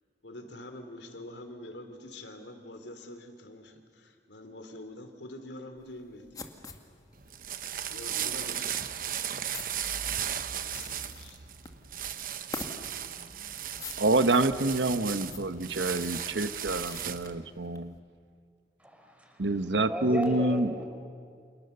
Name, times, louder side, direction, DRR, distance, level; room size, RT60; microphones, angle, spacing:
voice 1, 0.2-6.5 7.9-8.8 10.6-11.5, left 1 dB, 85° left, 6 dB, 3.1 m, -45 dB
sound 1, 5.8-18.0, left 3 dB, 20° left, 1.9 m, -46 dB
sound 2, 7.1-17.3, right 9 dB, 50° right, 1.1 m, -36 dB
voice 2, 14.0-17.9 19.4-20.7, right 2 dB, 85° right, 11 dB, 1.1 m, -27 dB
voice 3, 18.8-19.5 19.9-20.8, equal, 10° right, 2 dB, 4.5 m, -35 dB
29.5 x 28.5 x 6.9 m, 2.1 s
head